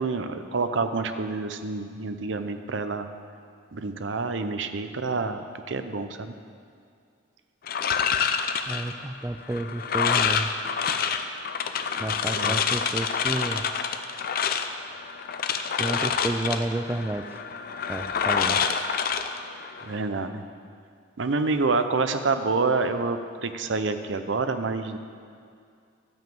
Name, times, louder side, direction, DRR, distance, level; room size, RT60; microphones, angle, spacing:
voice 1, 0.0-3.1 3.7-6.3 12.3-12.6 19.8-20.4 21.2-25.0, right 3 dB, 75° right, 9 dB, 0.6 m, -27 dB
sound 1, 7.7-20.0, left 6 dB, 50° left, 0.5 m, -27 dB
voice 2, 8.7-10.5 12.0-13.6 15.8-17.3 17.9-18.6, right 1 dB, 10° right, 8 dB, 0.3 m, -30 dB
12.0 x 5.3 x 7.7 m, 2.3 s
head